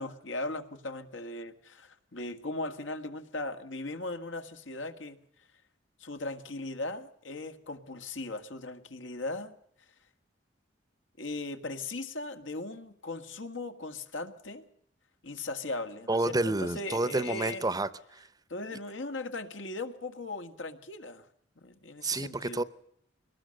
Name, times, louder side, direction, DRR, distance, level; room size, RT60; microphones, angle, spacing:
voice 1, 0.0-5.2 6.0-9.5 11.2-14.7 15.2-17.7 18.5-21.3 21.6-22.6, left 2 dB, 80° left, 7 dB, 1.8 m, -38 dB
voice 2, 16.1-18.3 22.0-22.6, right 2 dB, 20° right, 16 dB, 0.7 m, -29 dB
22.5 x 19.0 x 6.5 m, 0.71 s
head